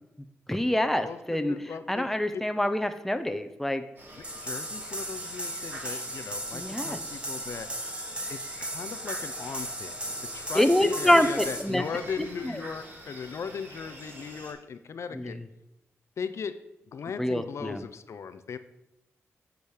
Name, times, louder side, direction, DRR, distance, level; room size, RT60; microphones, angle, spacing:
voice 1, 0.5-3.8 6.5-7.0 10.5-11.8 12.2-12.5 15.1-15.4 17.2-17.8, left 1 dB, 5° left, 8 dB, 0.7 m, -26 dB
voice 2, 1.5-2.4 4.2-7.7 8.3-10.0 10.2-15.4 16.2-16.6 16.9-18.6, left 6 dB, 65° left, 11 dB, 0.6 m, -38 dB
sound 1, 4.0-14.5, right 1 dB, 40° right, 2.4 m, -46 dB
sound 2, 4.2-11.6, right 1 dB, 20° right, 1.5 m, -36 dB
8.1 x 5.2 x 6.4 m, 0.93 s
cardioid pair, 90°, 5 cm